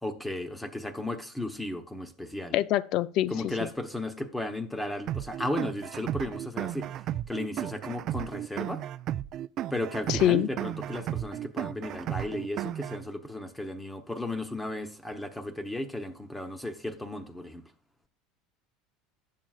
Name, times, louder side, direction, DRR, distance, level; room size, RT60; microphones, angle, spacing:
voice 1, 0.0-2.5 3.3-8.8 9.7-17.6, left 1 dB, 5° left, 0.9 m, -35 dB
voice 2, 2.5-3.7 10.1-10.5, left 13 dB, 55° left, 0.4 m, -25 dB
sound 1, 5.1-13.1, right 12 dB, 50° right, 0.3 m, -34 dB
10.5 x 7.5 x 2.4 m
supercardioid pair, 110°, 0 cm